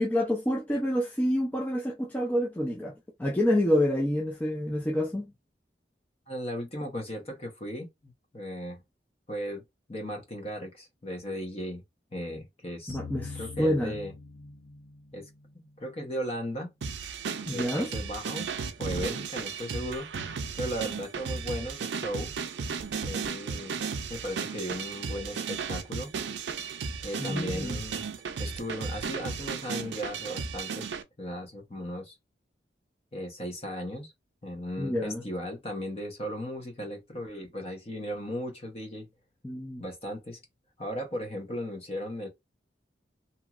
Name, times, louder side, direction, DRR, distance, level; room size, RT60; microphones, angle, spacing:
voice 1, 0.0-2.9 3.2-5.3 12.9-13.9 17.5-17.9 27.2-27.8 34.8-35.2 39.4-39.8, left 1 dB, 10° left, 0.4 m, -28 dB
voice 2, 6.3-8.8 9.3-9.6 9.9-11.8 12.1-13.0 13.3-14.1 15.1-16.7 17.5-18.5 18.8-20.1 20.6-22.3 23.0-23.8 24.1-26.1 27.0-28.1 28.4-30.9 31.2-32.2 33.1-34.1 34.4-39.1 39.8-40.4 40.8-42.3, equal, 35° left, 0.9 m, -36 dB
sound 1, 12.9-16.0, left 4 dB, 85° left, 0.6 m, -43 dB
sound 2, 16.8-31.0, right 5 dB, 80° right, 0.4 m, -35 dB
2.9 x 2.7 x 2.4 m
head